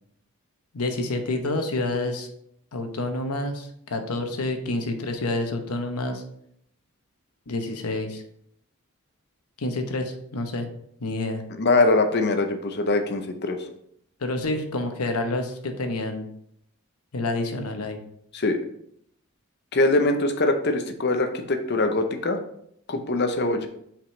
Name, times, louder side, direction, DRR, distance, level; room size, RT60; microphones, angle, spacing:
voice 1, 0.7-2.3 2.7-6.2 7.5-8.2 9.6-10.7 11.0-11.4 14.2-16.3 17.1-18.0, left 2 dB, 85° left, 6 dB, 0.9 m, -28 dB
voice 2, 11.6-13.7 18.3-18.6 19.7-22.4 22.9-23.7, left 2 dB, 50° left, 6 dB, 0.7 m, -23 dB
5.9 x 5.1 x 3.2 m, 0.71 s
head